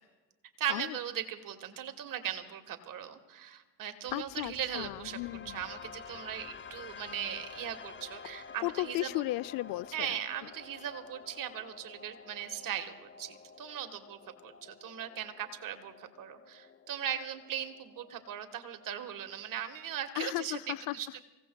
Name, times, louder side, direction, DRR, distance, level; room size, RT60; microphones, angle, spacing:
voice 1, 0.6-5.2 5.4-9.1 9.9-20.6 20.9-21.2, right 10 dB, 55° right, 8 dB, 1.5 m, -39 dB
voice 2, 4.1-5.6 8.6-10.2 20.2-21.0, left 18 dB, 60° left, 17 dB, 0.5 m, -35 dB
sound 1, 4.1-20.1, left 5 dB, 30° left, 0.8 m, -51 dB
26.0 x 16.5 x 2.3 m, 1.3 s
hypercardioid pair, 65°, 39 cm